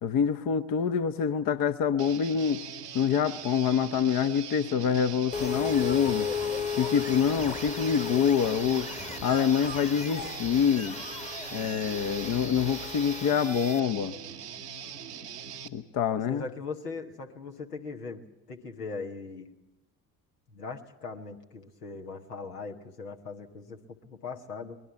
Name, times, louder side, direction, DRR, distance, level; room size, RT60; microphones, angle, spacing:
voice 1, 0.0-2.6 2.9-6.3 6.8-8.9 9.2-11.0 11.5-14.1 15.7-16.4, left 7 dB, 45° left, 12 dB, 1.0 m, -26 dB
Guitar, 2.0-15.7, right 7 dB, 85° right, 1.1 m, -42 dB
sound 1, 5.3-13.8, left 5 dB, 15° left, 1.2 m, -35 dB
voice 2, 16.3-19.5 20.5-24.8, left 4 dB, 80° left, 4 dB, 1.4 m, -40 dB
23.5 x 20.5 x 7.0 m, 0.96 s
figure-of-eight pair, 50°, 46 cm